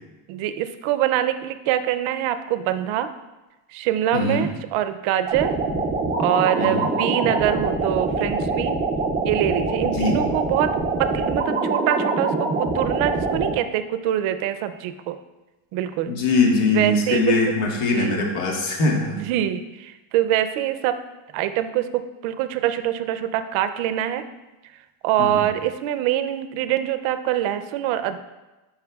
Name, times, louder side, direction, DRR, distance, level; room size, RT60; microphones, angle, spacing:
voice 1, 0.3-3.1 3.7-5.5 6.2-8.7 9.2-15.2 15.7-16.1 16.6-17.4 17.7-18.2 18.9-21.0 21.3-24.2 25.0-28.2, right 12 dB, 75° right, 11 dB, 0.6 m, -24 dB
voice 2, 4.1-4.5 6.6-6.9 9.8-10.2 16.1-19.2 25.2-25.5, left 3 dB, 85° left, 0 dB, 1.5 m, -22 dB
sound 1, 5.3-13.5, right 3 dB, 20° right, 0.4 m, -24 dB
10.5 x 5.6 x 2.3 m, 1.1 s
cardioid pair, 175°, 48 cm